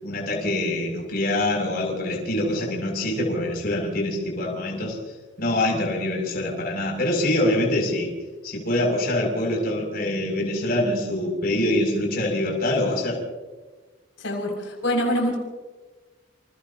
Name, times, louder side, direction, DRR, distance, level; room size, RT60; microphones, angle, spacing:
voice 1, 0.0-5.0 5.4-8.1 8.4-13.2, left 1 dB, 50° left, -1 dB, 7.2 m, -25 dB
voice 2, 14.2-15.3, equal, 80° left, -2 dB, 6.8 m, -25 dB
30.0 x 29.5 x 3.0 m, 1.3 s
head